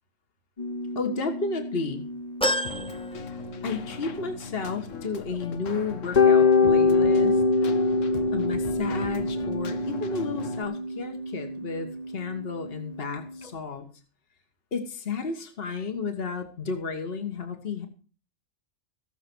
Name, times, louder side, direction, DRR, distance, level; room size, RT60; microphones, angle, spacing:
sound 1, 0.6-5.0 5.3-5.4 6.2-13.5, left 4 dB, 35° left, 1.1 m, -26 dB
voice 1, 0.9-2.0 3.6-7.4 8.3-13.9 14.7-17.9, left 4 dB, 50° left, 6 dB, 1.8 m, -32 dB
sound 2, 2.4-4.1 4.5-4.6 5.8-5.9, equal, 5° left, 0.7 m, -30 dB
Keyboard (musical), 2.6-10.6, left 6 dB, 85° left, 1.4 m, -39 dB
17.0 x 6.8 x 6.2 m, 0.38 s
omnidirectional pair, 1.3 m